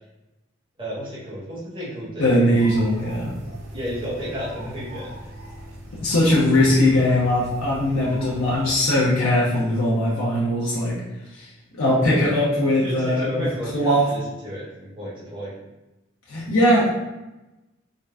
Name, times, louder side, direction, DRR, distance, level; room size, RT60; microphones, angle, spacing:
voice 1, 0.8-2.6 3.7-5.3 12.7-15.5, equal, 25° right, -9 dB, 1.2 m, -32 dB
voice 2, 2.2-3.3 6.0-11.0 11.3-11.5 11.8-13.5 13.7-14.1 16.3-16.9, left 1 dB, 80° left, -7 dB, 0.7 m, -20 dB
sound 1, 2.5-8.7, right 1 dB, 70° right, 0.8 m, -39 dB
3.8 x 2.2 x 3.4 m, 1.0 s
head